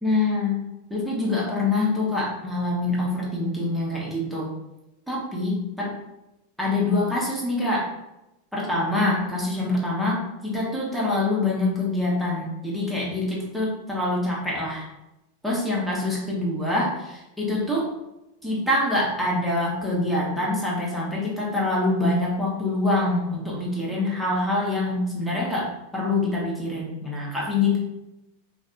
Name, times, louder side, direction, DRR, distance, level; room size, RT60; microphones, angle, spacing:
voice 1, 0.0-4.5 5.1-5.9 6.6-7.9 8.5-14.8 15.4-17.9 18.4-25.7 25.9-27.8, left 2 dB, ahead, -6 dB, 0.9 m, -25 dB
2.5 x 2.3 x 2.5 m, 0.93 s
hypercardioid pair, 100°, 0 cm